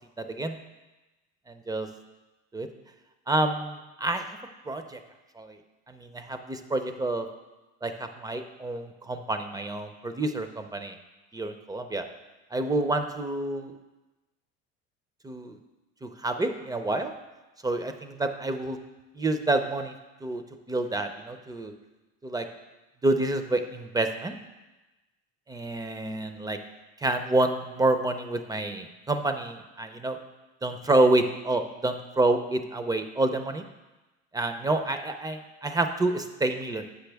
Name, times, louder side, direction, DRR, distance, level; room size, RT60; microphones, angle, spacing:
voice 1, 0.2-0.6 1.5-1.9 2.5-2.7 3.3-4.4 4.7-5.0 5.4-5.6 5.9-7.3 7.8-11.0 11.3-12.0 12.5-13.7 15.2-15.6 16.0-17.1 17.6-18.8 19.2-19.9 20.2-20.4 20.7-21.7 22.2-22.5 23.0-24.4 25.5-26.6 27.0-30.2 30.6-33.6 34.3-36.9, right 2 dB, 10° right, 8 dB, 0.5 m, -28 dB
8.1 x 5.7 x 3.4 m, 1.1 s
supercardioid pair, 110°, 32 cm